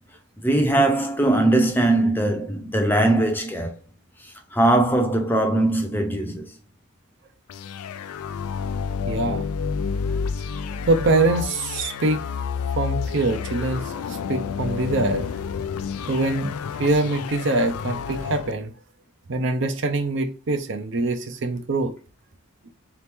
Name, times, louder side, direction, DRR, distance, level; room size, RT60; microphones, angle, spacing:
voice 1, 0.4-3.7 4.2-6.5, right 1 dB, 10° left, 0.5 m, -20 dB
sound 1, 7.5-18.5, left 6 dB, 90° left, 0.4 m, -29 dB
voice 2, 9.1-9.5 10.7-12.2 12.7-15.4 16.1-18.7 19.3-21.9, right 2 dB, 55° right, 0.5 m, -24 dB
4.0 x 3.0 x 3.4 m
head